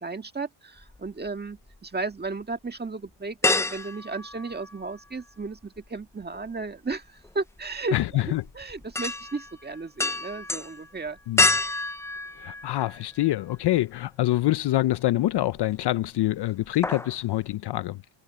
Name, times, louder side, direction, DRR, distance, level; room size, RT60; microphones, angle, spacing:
voice 1, 0.0-11.2, right 3 dB, 20° right, 1.7 m, -34 dB
sound 1, 0.8-1.8 2.2-2.3 3.4-5.2 5.4-13.3 13.8-13.9 15.3-15.9 16.2-16.4 16.6-17.2 17.5-17.6, left 2 dB, 5° left, 0.3 m, -29 dB
voice 2, 7.9-8.4 11.3-11.5 12.4-18.0, left 15 dB, 55° left, 0.5 m, -25 dB
cardioid pair, 110°, 50 cm